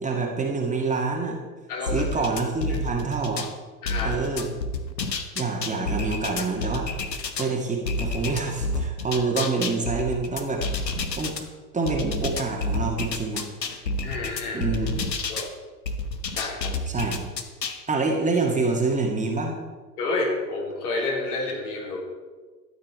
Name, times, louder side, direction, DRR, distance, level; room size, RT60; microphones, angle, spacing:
voice 1, 0.0-1.4 1.9-3.5 4.0-4.5 5.4-6.9 7.4-10.6 11.2-11.4 11.7-13.5 14.5-15.1 16.9-17.2 17.9-19.5, right 4 dB, 15° right, 0 dB, 1.8 m, -26 dB
voice 2, 1.7-2.2 3.8-4.2 14.0-14.7 15.3-15.5 16.3-16.7 20.0-22.0, left 3 dB, 65° left, -1 dB, 3.5 m, -29 dB
sound 1, 1.9-3.5 3.9-7.5 7.9-11.4 11.9-15.5 15.9-17.8, left 3 dB, 85° left, 1.1 m, -29 dB
13.0 x 9.0 x 4.6 m, 1.4 s
figure-of-eight pair, 90°, 49 cm